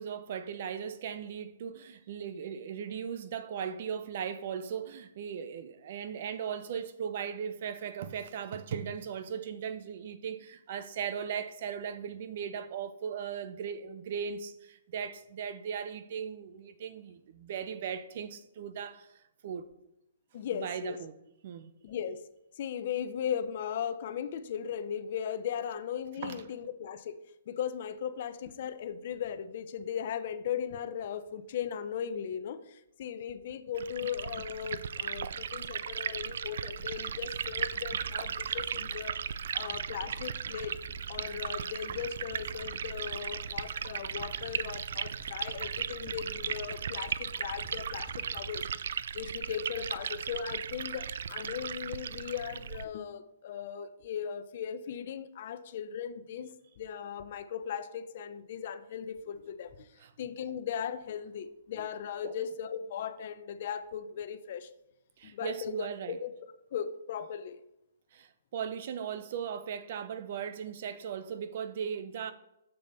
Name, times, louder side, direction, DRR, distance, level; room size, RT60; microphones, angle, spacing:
voice 1, 0.0-19.1 19.4-19.7 20.5-21.1 21.4-21.7 26.2-26.4 60.0-60.1 62.2-62.3 65.2-66.2 68.1-72.3, right 7 dB, 50° right, 0.7 m, -38 dB
voice 2, 20.3-21.0 21.8-22.2 22.6-27.2 27.5-39.2 39.5-40.8 41.1-48.7 49.1-56.5 56.8-59.9 60.2-64.7 65.2-65.9 66.2-66.3 66.7-67.6, left 8 dB, 55° left, 0.7 m, -37 dB
Liquid, 33.7-52.8, right 7 dB, 65° right, 0.4 m, -37 dB
sound 1, 37.4-50.2 50.8-50.9, right 2 dB, ahead, 2.0 m, -50 dB
7.0 x 6.7 x 4.1 m
hypercardioid pair, 140°, 0 cm